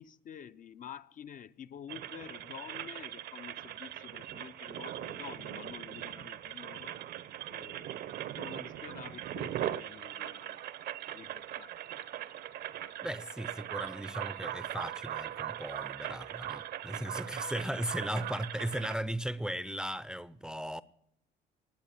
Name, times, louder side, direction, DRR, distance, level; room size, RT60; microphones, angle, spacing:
voice 1, 0.0-7.0 7.5-10.6 11.1-11.8, left 9 dB, 50° left, 0.7 m, -49 dB
sound 1, 1.9-19.0, right 12 dB, 70° right, 0.9 m, -40 dB
voice 2, 13.0-20.8, right 1 dB, 5° right, 0.6 m, -37 dB
19.0 x 8.2 x 8.7 m
cardioid pair, 110°, 17 cm